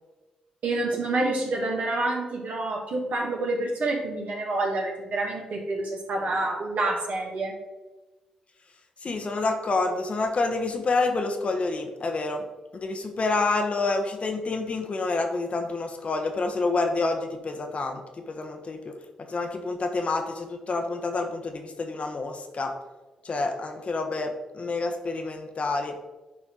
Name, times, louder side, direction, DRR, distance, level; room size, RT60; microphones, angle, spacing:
voice 1, 0.6-7.5, right 2 dB, 60° right, -1 dB, 2.3 m, -28 dB
voice 2, 9.0-12.5 12.7-18.9 19.3-22.7 23.2-26.0, left 3 dB, 45° left, 4 dB, 1.3 m, -28 dB
11.0 x 4.4 x 3.8 m, 1.2 s
hypercardioid pair, 40°, 3 cm